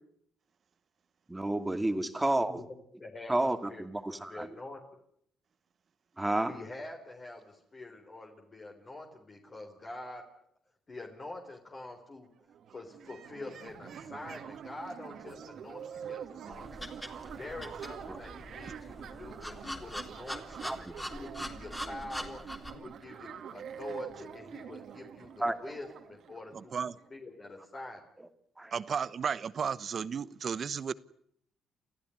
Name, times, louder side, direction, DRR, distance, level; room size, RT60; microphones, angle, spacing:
voice 1, 1.3-2.6 3.3-4.5 6.2-6.5 18.1-18.2 20.6-20.9 25.4-25.6 28.6-28.7, right 1 dB, 10° right, 2.3 m, -30 dB
voice 2, 3.0-3.4 3.7-4.8 6.5-10.3 10.9-12.3 12.7-20.8 21.1-22.4 22.7-26.8 27.1-28.0, left 2 dB, 35° left, 3.9 m, -46 dB
sound 1, 12.2-12.3 12.5-27.1, right 8 dB, 65° right, 2.6 m, -46 dB
sound 2, 16.5-22.7, equal, 10° left, 3.6 m, -43 dB
voice 3, 26.5-26.9 28.7-30.9, right 6 dB, 50° right, 1.0 m, -34 dB
29.0 x 14.5 x 9.8 m
cardioid pair, 90°, 0 cm